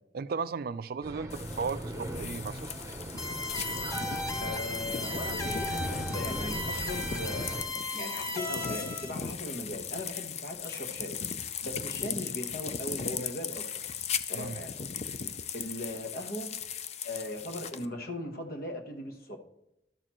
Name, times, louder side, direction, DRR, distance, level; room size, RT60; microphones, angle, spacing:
voice 1, 0.1-2.7 14.3-14.6, right 5 dB, 60° right, 15 dB, 0.4 m, -35 dB
sound 1, 1.0-7.6, right 1 dB, 20° right, 0.9 m, -38 dB
sound 2, 1.3-17.9, left 7 dB, 40° left, 0.4 m, -38 dB
sound 3, 3.2-9.1, left 2 dB, 20° left, 0.9 m, -36 dB
voice 2, 4.4-11.2 11.6-13.6 14.3-14.8 15.5-16.6 17.0-19.4, left 1 dB, 60° left, 5 dB, 1.2 m, -39 dB
12.5 x 6.5 x 3.0 m, 0.85 s
head